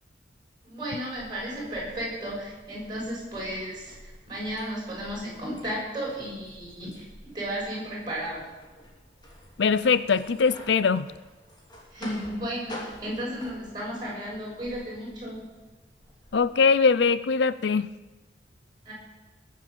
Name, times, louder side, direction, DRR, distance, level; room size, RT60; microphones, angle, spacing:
voice 1, 0.6-8.4 11.9-15.5 18.8-18.9, equal, 25° right, -4 dB, 6.6 m, -34 dB
sound 1, 1.0-16.5, left 1 dB, 25° left, 2.9 m, -49 dB
voice 2, 9.6-11.1 16.3-17.9, left 5 dB, 70° left, 16 dB, 0.5 m, -22 dB
21.0 x 7.5 x 7.1 m, 1.2 s
head